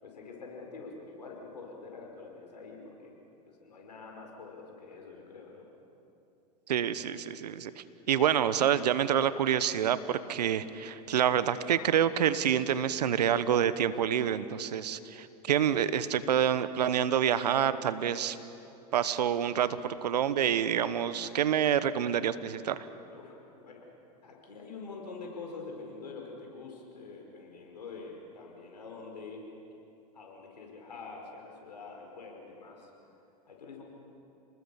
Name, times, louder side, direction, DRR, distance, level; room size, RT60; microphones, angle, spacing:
voice 1, 0.0-3.1 3.5-5.7 23.1-23.9 24.2-29.5 30.1-32.9 33.5-33.8, left 4 dB, 85° left, 0 dB, 5.5 m, -45 dB
voice 2, 6.7-18.4 18.9-22.9, right 9 dB, 80° right, 14 dB, 1.1 m, -27 dB
29.5 x 20.0 x 7.2 m, 2.8 s
hypercardioid pair, 95°, 21 cm